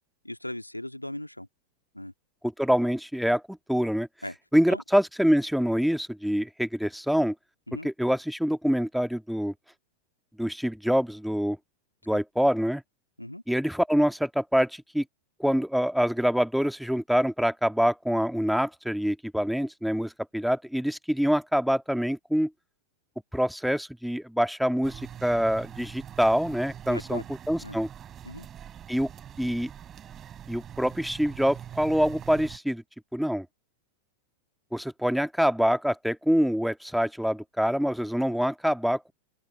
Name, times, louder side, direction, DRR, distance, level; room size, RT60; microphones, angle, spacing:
voice 1, 0.2-1.5 1.9-2.1 4.2-4.4 4.7-4.8 7.7-7.9 13.2-13.4 26.9-27.2 27.6-27.8 28.2-28.5, left 1 dB, 85° left, 1.8 m, -38 dB
voice 2, 2.4-4.1 4.5-7.3 7.8-9.5 10.4-11.6 12.1-12.8 13.5-15.0 15.4-22.5 23.3-27.9 28.9-29.1 29.4-29.7 30.5-32.8 33.1-33.5 34.7-39.1, equal, ahead, 1.9 m, -25 dB
sound 1, 24.8-32.6, right 9 dB, 25° right, 4.0 m, -43 dB
figure-of-eight pair, 90°, 0 cm